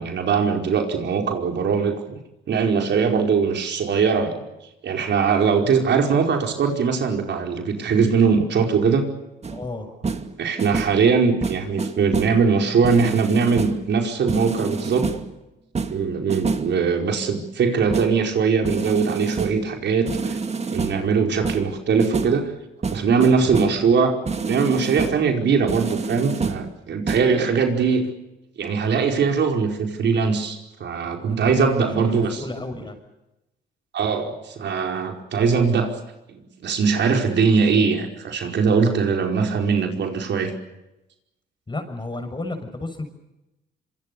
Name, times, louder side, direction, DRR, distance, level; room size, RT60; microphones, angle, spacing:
voice 1, 0.0-2.0 2.5-4.4 4.8-9.1 10.4-15.1 15.9-20.4 20.7-22.5 22.9-24.2 24.5-28.0 28.6-32.4 33.9-36.0 36.3-40.5, right 5 dB, 65° right, 3 dB, 4.9 m, -21 dB
sound 1, 9.4-9.7 10.0-10.3 10.6-11.1 11.4-12.4 12.8-13.9 14.3-15.3 15.7-16.8 17.9-18.2 18.6-19.7 20.0-21.1 21.4-22.5 22.8-23.9 24.2-25.3 25.7-26.7 27.1-27.3, right 4 dB, 35° right, 2.4 m, -28 dB
voice 2, 9.5-9.9 23.4-23.5 31.3-33.0 41.7-43.0, left 2 dB, 25° left, 8 dB, 6.7 m, -33 dB
26.0 x 25.5 x 6.9 m, 0.95 s
cardioid pair, 90°, 20 cm